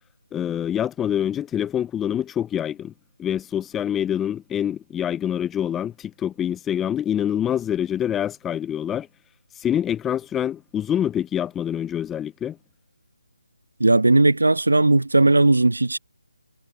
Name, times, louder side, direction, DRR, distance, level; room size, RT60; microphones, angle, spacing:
voice 1, 0.3-2.9 3.2-9.1 9.6-12.6, left 10 dB, 10° left, 0.4 m, -26 dB
voice 2, 13.8-16.0, right 2 dB, 80° right, 1.0 m, -17 dB
figure-of-eight pair, 160°, 0 cm